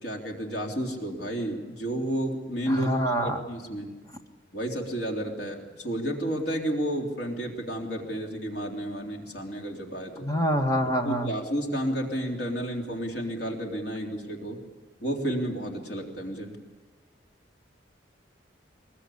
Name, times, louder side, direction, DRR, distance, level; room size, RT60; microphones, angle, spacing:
voice 1, 0.0-2.9 3.2-4.0 4.5-10.3 11.0-14.6 15.0-16.6, equal, 60° left, 1 dB, 3.5 m, -31 dB
voice 2, 2.7-3.4 10.2-11.3, equal, 20° left, 4 dB, 1.8 m, -26 dB
22.5 x 21.0 x 8.6 m, 1.3 s
head